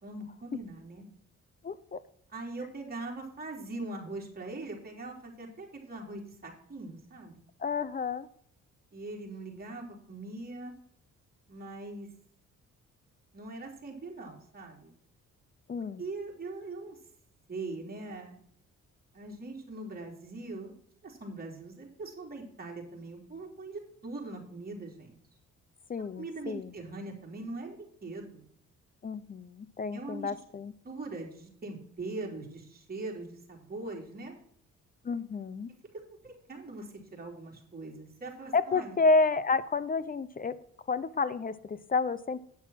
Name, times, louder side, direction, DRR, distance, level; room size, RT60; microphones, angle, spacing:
voice 1, 0.0-1.1 2.3-7.4 8.9-10.7 11.5-12.1 13.3-14.9 16.0-17.0 17.5-18.4 19.1-20.7 21.0-25.2 26.2-28.4 29.9-30.3 30.8-34.3 35.9-39.0, right 2 dB, 30° right, -1 dB, 3.6 m, -41 dB
voice 2, 1.6-2.0 7.6-8.3 15.7-16.0 25.9-26.7 29.0-30.7 35.0-35.7 38.5-40.6 40.9-42.4, left 4 dB, 30° left, 16 dB, 0.6 m, -30 dB
9.7 x 5.9 x 5.8 m, 0.64 s
cardioid pair, 90°, 30 cm